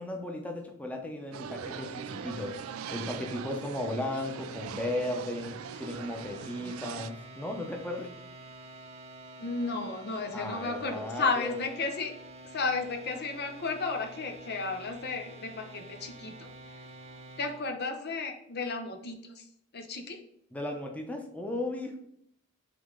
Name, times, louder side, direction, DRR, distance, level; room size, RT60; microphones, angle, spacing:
voice 1, 0.0-8.1 10.3-11.6 20.5-22.0, left 1 dB, 5° left, 2 dB, 0.8 m, -36 dB
sound 1, 1.3-7.1, right 8 dB, 75° right, 0.3 m, -42 dB
sound 2, 1.6-17.6, right 2 dB, 30° right, 0.7 m, -48 dB
voice 2, 9.4-12.1 12.5-16.5 17.4-19.4 19.7-20.2, left 4 dB, 50° left, 6 dB, 0.6 m, -33 dB
8.4 x 3.2 x 3.8 m, 0.70 s
head